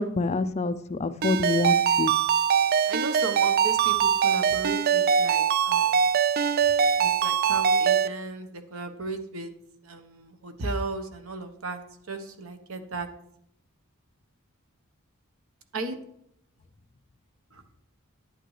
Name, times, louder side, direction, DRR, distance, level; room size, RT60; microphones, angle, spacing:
voice 1, 0.0-2.1, left 3 dB, 30° left, 12 dB, 0.4 m, -26 dB
Ringtone, 1.2-8.1, right 7 dB, 45° right, 0.3 m, -22 dB
voice 2, 2.8-6.1 7.0-9.5 9.8-11.8 12.1-13.1 15.7-16.0 17.5-17.6, right 3 dB, 70° right, 7 dB, 1.1 m, -35 dB
11.0 x 8.9 x 3.3 m, 0.74 s
head